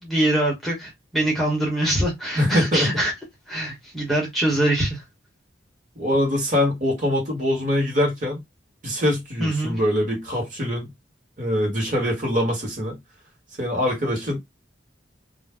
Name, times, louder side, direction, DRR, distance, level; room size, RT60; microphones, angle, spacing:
voice 1, 0.0-3.1 3.5-5.0 9.4-9.8, right 1 dB, ahead, 0.8 m, -23 dB
voice 2, 2.3-2.9 6.0-8.4 8.8-10.9 11.4-13.0 13.6-14.4, left 1 dB, 45° right, 1.2 m, -23 dB
2.4 x 2.0 x 3.3 m
head